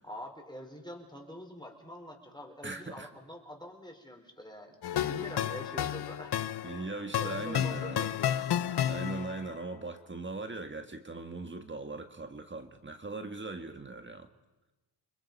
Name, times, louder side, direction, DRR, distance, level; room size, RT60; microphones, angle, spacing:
voice 1, 0.0-6.4 7.2-8.3, left 1 dB, 10° left, 3 dB, 4.6 m, -45 dB
voice 2, 2.6-3.1 6.6-8.1 8.9-14.3, right 3 dB, 25° right, 6 dB, 1.8 m, -40 dB
sound 1, 4.8-9.5, left 10 dB, 65° left, 0.8 m, -32 dB
30.0 x 21.0 x 5.4 m, 1.1 s
cardioid pair, 75°, 43 cm